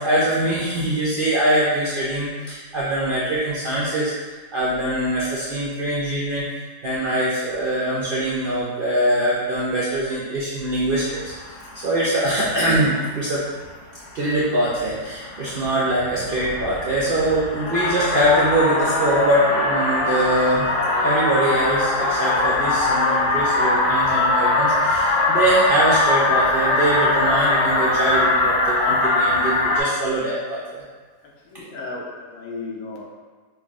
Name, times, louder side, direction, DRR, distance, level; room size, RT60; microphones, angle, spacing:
voice 1, 0.0-4.1 4.5-11.2 11.7-13.4 14.1-20.6 20.9-30.8, right 1 dB, 60° right, -8 dB, 0.5 m, -23 dB
sound 1, 11.0-12.0 12.3-13.0 13.6-13.7 14.1-14.4 14.7-29.8, left 2 dB, 90° left, 1.3 m, -21 dB
voice 2, 31.2-33.0, left 3 dB, 70° left, -3 dB, 1.1 m, -35 dB
5.7 x 2.3 x 2.4 m, 1.4 s
omnidirectional pair, 1.6 m